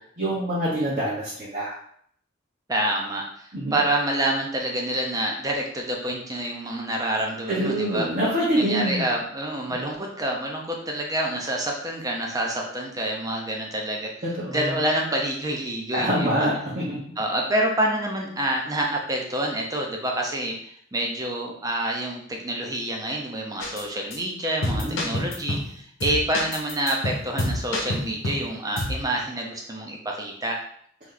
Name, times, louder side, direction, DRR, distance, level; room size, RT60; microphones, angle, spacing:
voice 1, 0.2-1.8 3.5-3.7 7.5-9.1 9.7-9.8 14.4-14.7 15.9-17.0 24.7-25.1, right 1 dB, 45° right, -8 dB, 1.1 m, -25 dB
voice 2, 2.7-8.1 8.6-14.1 14.5-16.5 17.2-30.6, right 1 dB, 20° right, 0 dB, 0.7 m, -27 dB
sound 1, 23.6-23.8 24.1-24.2 24.6-25.7 26.0-28.5 28.8-29.0, left 1 dB, 85° left, 0.9 m, -28 dB
3.2 x 3.1 x 3.9 m, 0.63 s
head